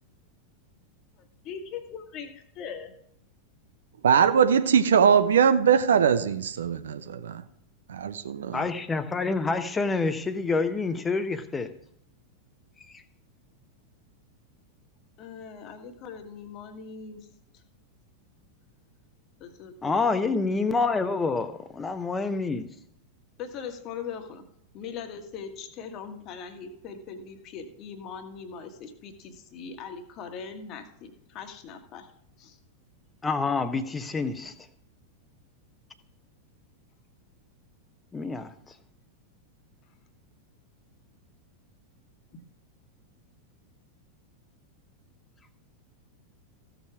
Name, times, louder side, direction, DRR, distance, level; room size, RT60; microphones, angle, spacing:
voice 1, 1.2-3.0 15.2-17.3 19.4-19.9 23.4-24.4 24.7-32.1 32.4-32.6, left 6 dB, 35° left, 7 dB, 1.6 m, -40 dB
voice 2, 4.0-7.4 7.9-8.6, right 7 dB, 65° right, 10 dB, 0.8 m, -21 dB
voice 3, 8.5-11.7 12.9-13.0 19.8-22.7 33.2-34.5 38.1-38.5, left 4 dB, 15° left, 10 dB, 1.0 m, -27 dB
15.0 x 7.1 x 4.8 m, 0.72 s
figure-of-eight pair, 90°, 0 cm